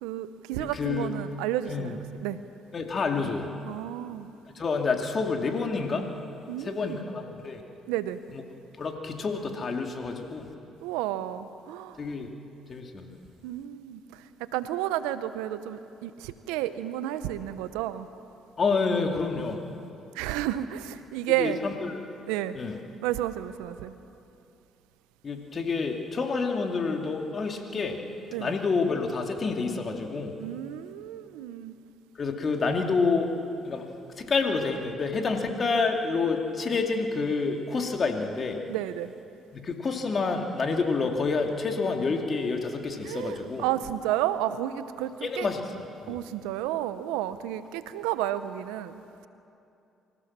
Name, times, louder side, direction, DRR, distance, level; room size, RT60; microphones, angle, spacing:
voice 1, 0.0-2.4 3.7-4.3 6.5-7.0 7.9-8.2 10.8-12.0 13.4-18.1 19.4-19.5 20.1-21.6 22.3-22.6 23.0-23.9 28.3-28.5 30.4-31.8 38.7-39.1 43.0-45.5 46.1-49.3, right 13 dB, 85° right, 13 dB, 0.7 m, -31 dB
voice 2, 0.6-1.1 1.7-2.0 2.7-3.5 4.5-6.1 6.6-7.6 8.3-8.4 8.8-10.5 12.0-12.3 12.7-13.1 18.6-19.6 21.4-22.0 22.5-22.7 25.2-28.0 28.4-30.4 32.1-33.3 33.6-33.9 34.2-38.6 39.5-43.7 45.2-46.2, left 4 dB, 45° left, 3 dB, 2.6 m, -28 dB
25.0 x 15.5 x 7.5 m, 2.7 s
supercardioid pair, 65°, 0 cm